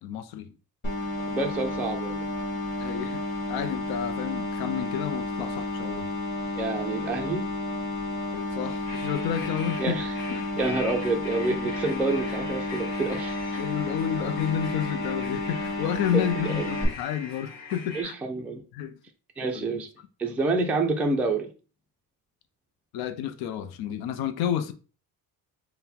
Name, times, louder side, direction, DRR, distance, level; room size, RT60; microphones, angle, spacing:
voice 1, 0.0-0.6 2.8-3.2 3.5-6.1 8.5-10.0 10.3-10.5 13.6-18.1 18.7-18.9 19.4-19.8 22.9-24.7, left 10 dB, 90° left, 0.5 m, -30 dB
sound 1, 0.8-16.8, left 2 dB, 30° left, 1.4 m, -31 dB
voice 2, 1.3-2.2 6.6-7.4 9.8-10.1 10.6-13.6 16.1-16.7 17.9-18.6 19.4-19.9 20.2-21.5, right 3 dB, 5° right, 0.3 m, -28 dB
sound 2, 8.8-18.0, left 4 dB, 70° left, 1.5 m, -41 dB
3.7 x 2.1 x 4.2 m
cardioid pair, 160°, 36 cm